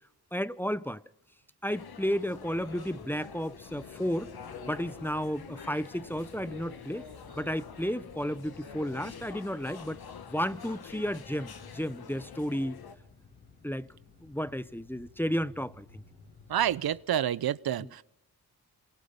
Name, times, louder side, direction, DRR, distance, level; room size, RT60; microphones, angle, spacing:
voice 1, 0.3-1.0 1.6-4.3 4.7-7.0 7.4-10.0 10.3-12.8 13.6-13.9 14.2-16.0 17.8-17.9, equal, 5° left, 0.8 m, -33 dB
sound 1, 1.7-13.0, left 6 dB, 70° left, 1.7 m, -47 dB
sound 2, 2.4-17.0, left 3 dB, 90° left, 5.9 m, -54 dB
voice 2, 16.5-18.0, right 10 dB, 65° right, 0.8 m, -28 dB
28.0 x 23.5 x 5.5 m
cardioid pair, 55°, 39 cm